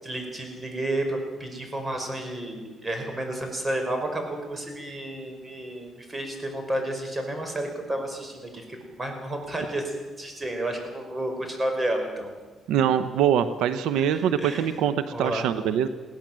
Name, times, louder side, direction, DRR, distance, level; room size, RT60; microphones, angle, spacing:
voice 1, 0.0-12.3 14.0-14.7 15.1-15.4, right 1 dB, 25° right, 4 dB, 5.5 m, -31 dB
voice 2, 12.7-15.9, right 9 dB, 90° right, 11 dB, 0.9 m, -23 dB
21.5 x 17.0 x 7.5 m, 1.3 s
cardioid pair, 90°, 0 cm